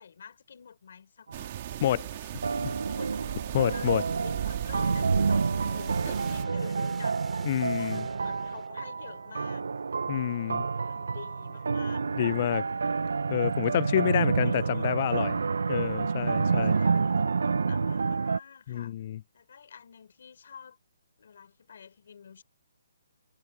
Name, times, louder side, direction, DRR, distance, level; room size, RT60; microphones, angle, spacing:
voice 1, 0.0-1.5 2.3-3.1 3.7-9.6 10.2-12.9 14.2-14.9 16.4-18.9 19.3-20.8 21.2-22.4, left 7 dB, 55° left, 4.9 m, -49 dB
sound 1, 1.3-6.5, right 14 dB, 30° right, 2.1 m, -37 dB
sound 2, 1.3-1.8 2.4-18.4, right 4 dB, 90° right, 0.4 m, -29 dB
voice 2, 1.8-2.1 2.6-2.7 3.5-4.0 7.5-8.1 10.1-10.6 12.2-12.6 13.3-15.4 15.7-16.8 18.7-19.2, left 12 dB, 30° left, 0.3 m, -28 dB
sound 3, 5.7-9.1, right 9 dB, 10° right, 2.7 m, -51 dB
hypercardioid pair, 175°, 0 cm